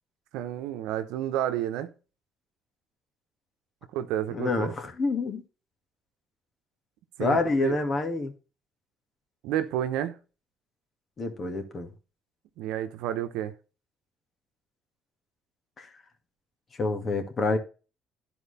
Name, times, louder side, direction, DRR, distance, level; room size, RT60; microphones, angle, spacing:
voice 1, 0.3-1.9 3.9-4.7 7.2-7.8 9.4-10.2 12.6-13.5, right 11 dB, 90° right, 0.9 m, -30 dB
voice 2, 4.3-5.4 7.2-8.3 11.2-11.9 15.8-15.9 16.8-17.6, left 3 dB, 40° left, 2.0 m, -27 dB
11.5 x 4.5 x 4.2 m
cardioid pair, 90°, 0 cm